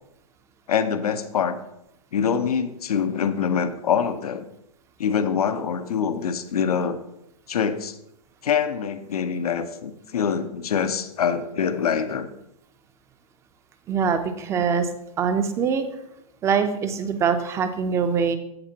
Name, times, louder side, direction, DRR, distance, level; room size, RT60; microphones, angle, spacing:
voice 1, 0.7-1.6 2.1-4.4 5.0-7.0 7.5-8.0 8.4-12.3, left 7 dB, 85° left, 10 dB, 0.8 m, -24 dB
voice 2, 13.9-14.9 15.2-15.9 16.4-18.4, right 6 dB, 15° right, 9 dB, 0.6 m, -23 dB
14.5 x 5.0 x 2.9 m, 0.83 s
hypercardioid pair, 145°, 19 cm